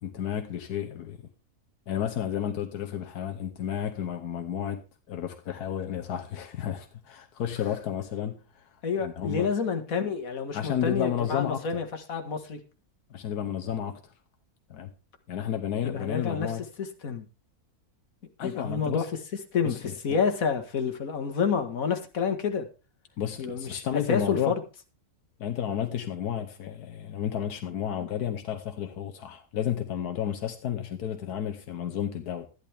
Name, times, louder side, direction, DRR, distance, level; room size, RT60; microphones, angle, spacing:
voice 1, 0.0-1.2 1.9-4.8 5.1-8.7 9.0-9.5 10.5-11.8 13.1-14.1 14.7-14.9 15.3-16.6 18.4-19.1 19.6-20.2 23.2-24.5 25.4-32.5, left 9 dB, 90° left, 1.5 m, -32 dB
voice 2, 8.8-12.6 15.8-16.5 16.8-17.3 18.4-19.1 19.5-19.7 20.0-22.7 23.4-23.8 24.1-24.6, left 6 dB, 65° left, 2.0 m, -29 dB
13.0 x 11.0 x 3.5 m
omnidirectional pair, 1.6 m